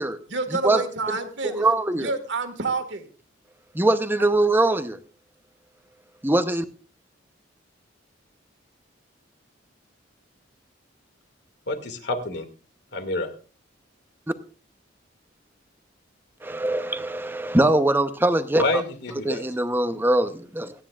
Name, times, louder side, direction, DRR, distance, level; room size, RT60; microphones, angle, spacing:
voice 1, 0.3-1.6 2.0-3.1, right 3 dB, 65° right, 7 dB, 1.9 m, -28 dB
voice 2, 1.4-2.1 3.7-5.0 6.2-6.6 16.4-18.6 19.2-20.7, right 2 dB, 10° right, 10 dB, 0.8 m, -22 dB
voice 3, 11.7-12.5 12.9-13.3 18.6-19.4, left 2 dB, 60° left, 6 dB, 2.3 m, -27 dB
27.5 x 9.8 x 2.4 m, 0.36 s
head